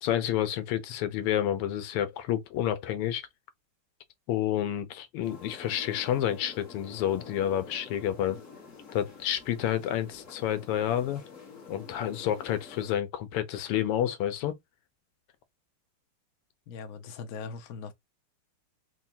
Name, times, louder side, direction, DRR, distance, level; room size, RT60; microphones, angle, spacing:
voice 1, 0.0-3.2 4.3-8.4 8.9-11.2 11.7-14.5, left 11 dB, 90° left, 1.7 m, -29 dB
sound 1, 5.2-13.0, left 5 dB, 40° left, 1.3 m, -48 dB
voice 2, 16.7-17.9, left 5 dB, 70° left, 0.8 m, -40 dB
4.8 x 2.2 x 2.7 m
omnidirectional pair, 2.4 m